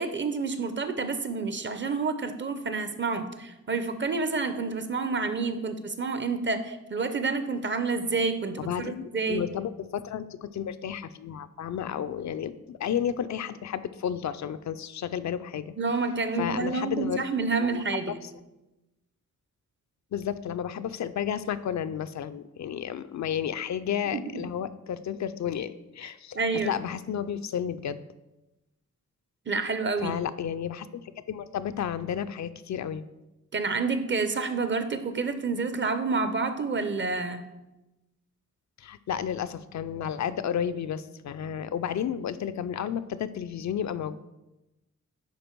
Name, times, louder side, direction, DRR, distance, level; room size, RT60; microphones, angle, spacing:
voice 1, 0.0-9.5 15.8-18.2 24.1-24.4 26.3-26.8 29.5-30.1 33.5-37.4, right 4 dB, 40° right, 10 dB, 0.6 m, -29 dB
voice 2, 8.6-15.7 16.4-17.2 17.6-18.3 20.1-28.0 30.0-33.0 38.8-44.2, left 9 dB, 65° left, 12 dB, 0.4 m, -32 dB
10.5 x 4.3 x 4.5 m, 0.99 s
wide cardioid pair, 140°, 30 cm